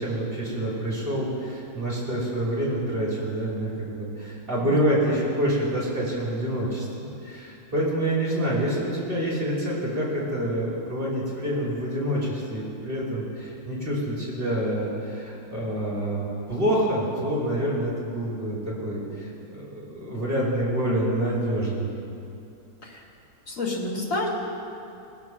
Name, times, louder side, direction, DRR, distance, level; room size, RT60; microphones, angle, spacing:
voice 1, 0.0-21.9, right 1 dB, 25° right, -6 dB, 2.9 m, -27 dB
voice 2, 23.5-24.3, left 2 dB, 40° left, -3 dB, 2.3 m, -29 dB
20.0 x 7.4 x 6.0 m, 2.7 s
omnidirectional pair, 2.1 m